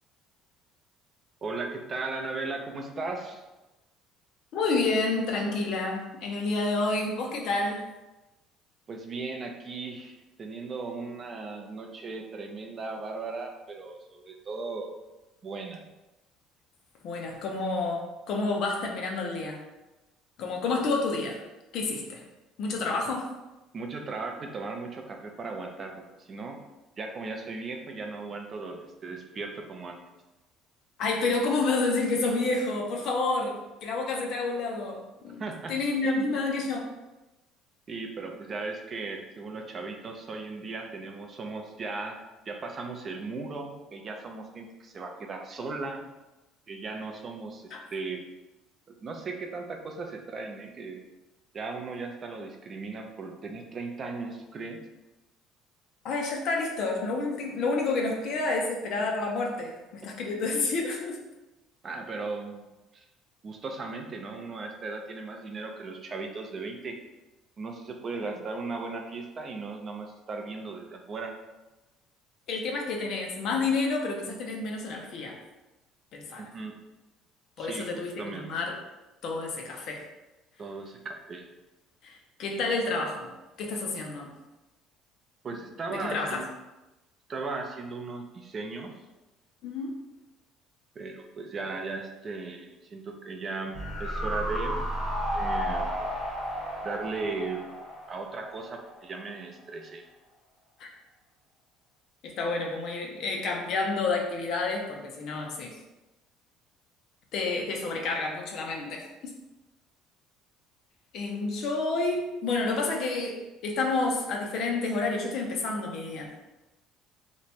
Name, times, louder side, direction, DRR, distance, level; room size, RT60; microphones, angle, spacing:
voice 1, 1.4-3.4 8.9-14.9 15.4-15.8 23.7-26.6 27.0-30.0 35.4-35.8 36.0-36.4 37.9-46.0 46.7-48.2 48.9-51.0 51.5-54.8 61.8-62.6 62.9-63.0 63.4-67.0 67.6-71.3 76.4-76.7 77.6-77.9 78.2-78.6 80.6-81.5 85.4-86.5 87.3-88.9 91.0-94.9 95.3-95.9 96.8-97.6 98.1-100.0, right 3 dB, 25° right, 3 dB, 0.4 m, -37 dB
voice 2, 4.5-7.9 17.0-19.6 20.4-21.4 21.7-22.2 22.6-23.3 31.0-33.5 33.8-35.4 35.7-36.9 47.7-47.8 56.0-61.2 68.2-68.3 72.5-75.4 76.1-76.5 77.6-78.8 79.2-80.0 82.0-83.3 83.6-84.3 85.9-86.4 89.6-89.9 100.8-100.9 102.2-105.8 107.3-109.0 111.1-116.3, left 3 dB, 45° left, 0 dB, 0.6 m, -29 dB
sound 1, 93.7-99.0 99.3-99.4, equal, 10° left, 1.1 m, -32 dB
2.9 x 2.2 x 4.1 m, 1.0 s
cardioid pair, 175°, 0 cm